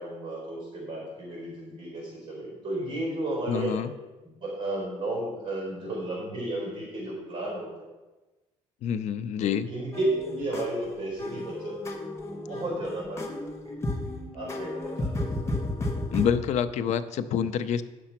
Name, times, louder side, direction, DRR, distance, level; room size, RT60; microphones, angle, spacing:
voice 1, 0.0-3.8 4.2-7.7 9.4-11.9 12.3-13.8 14.3-15.5, right 1 dB, 40° right, -3 dB, 3.9 m, -33 dB
voice 2, 3.5-3.9 8.8-9.7 16.1-17.8, left 8 dB, 65° left, 11 dB, 0.6 m, -27 dB
sound 1, 9.9-16.3, left 1 dB, 20° left, 1.2 m, -33 dB
9.6 x 6.8 x 5.8 m, 1.1 s
cardioid pair, 155°, 13 cm